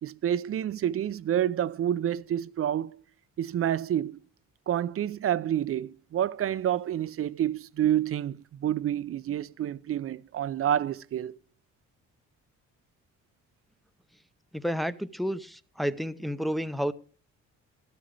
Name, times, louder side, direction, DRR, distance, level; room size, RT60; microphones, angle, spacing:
voice 1, 0.0-3.0 3.4-4.2 4.7-11.4, right 10 dB, 50° right, 0.5 m, -28 dB
voice 2, 14.5-16.9, equal, ahead, 0.6 m, -30 dB
13.5 x 13.0 x 3.3 m
cardioid pair, 90°, 30 cm